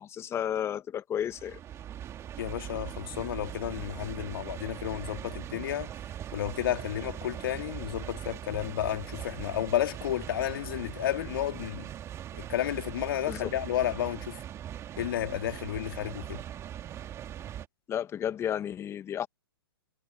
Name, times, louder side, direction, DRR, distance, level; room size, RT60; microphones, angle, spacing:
voice 1, 0.0-1.6 13.3-13.5 17.9-19.3, left 10 dB, 20° left, 1.7 m, -32 dB
sound 1, 1.2-17.7, right 10 dB, 20° right, 2.2 m, -41 dB
voice 2, 2.4-5.9 6.3-11.9 12.3-14.4 15.0-16.4, left 12 dB, 60° left, 2.6 m, -32 dB
hypercardioid pair, 130°, 13 cm